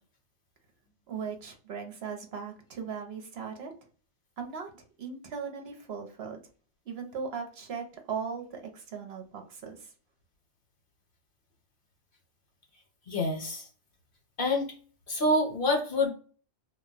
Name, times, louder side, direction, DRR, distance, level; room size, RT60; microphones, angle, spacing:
voice 1, 1.1-3.7 4.4-6.4 6.9-9.9, right 6 dB, 65° right, 4 dB, 0.9 m, -38 dB
voice 2, 13.1-13.7 14.4-14.7 15.1-16.1, left 1 dB, 50° left, 1 dB, 1.0 m, -27 dB
2.3 x 2.2 x 3.8 m, 0.40 s
omnidirectional pair, 1.2 m